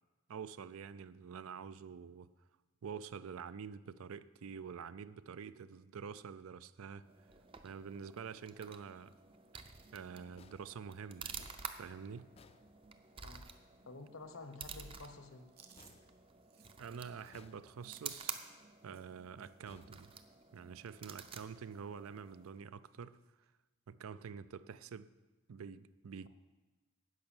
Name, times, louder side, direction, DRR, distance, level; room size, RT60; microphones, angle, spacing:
voice 1, 0.3-2.3 2.8-7.0 7.6-9.1 9.9-12.3 16.8-18.4 18.8-20.1 20.5-23.2 23.9-25.1 25.5-26.3, right 6 dB, 80° right, 0.4 m, -47 dB
sound 1, 7.0-22.6, right 6 dB, 25° right, 0.5 m, -51 dB
sound 2, 10.4-13.4 15.8-16.8 17.3-18.1 19.6-20.7, left 4 dB, 25° left, 0.4 m, -64 dB
voice 2, 13.9-15.5, left 3 dB, 75° left, 1.0 m, -50 dB
Chewing mastication, 15.5-19.7 20.0-20.3 20.5-21.5 21.7-22.0 22.3-23.0 23.4-23.5 24.6-25.0, right 8 dB, 45° right, 0.8 m, -66 dB
12.5 x 5.4 x 8.8 m
head